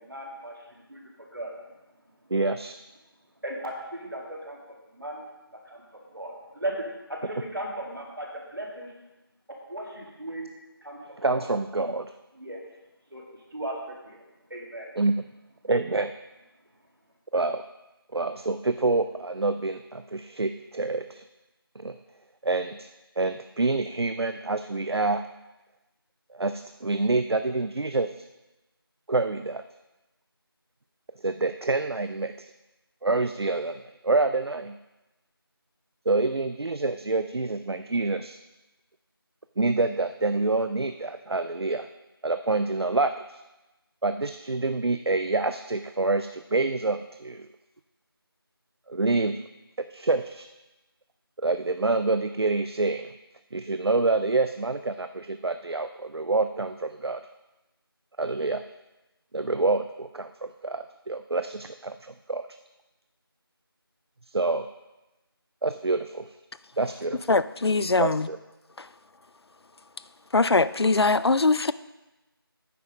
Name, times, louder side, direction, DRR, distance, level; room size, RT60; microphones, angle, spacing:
voice 1, 0.0-0.5 0.9-1.5 3.4-4.6 4.9-5.2 5.5-5.8 6.1-8.3 8.5-8.9 9.7-10.5 10.8-11.0 11.3-11.5 12.4-12.6 13.1-13.2 13.5-14.2 14.5-14.9, right 1 dB, 60° right, -1 dB, 2.4 m, -36 dB
voice 2, 2.3-2.7 11.2-12.1 15.0-15.2 15.6-16.1 17.3-17.6 18.1-21.2 21.8-22.0 22.4-22.9 23.2-25.2 26.3-28.3 29.1-29.6 31.2-32.5 33.0-34.8 36.1-38.4 39.6-41.9 42.2-43.4 44.0-47.5 48.9-49.4 49.9-50.5 51.4-53.1 53.5-57.3 58.2-58.6 59.3-62.5 64.3-64.7 65.6-66.4 66.8-67.4 68.0-68.4, right 3 dB, 80° right, 9 dB, 0.5 m, -27 dB
voice 3, 67.3-68.3 70.3-71.7, left 3 dB, 90° left, 15 dB, 0.5 m, -22 dB
9.3 x 6.0 x 5.1 m, 1.0 s
figure-of-eight pair, 180°, 13 cm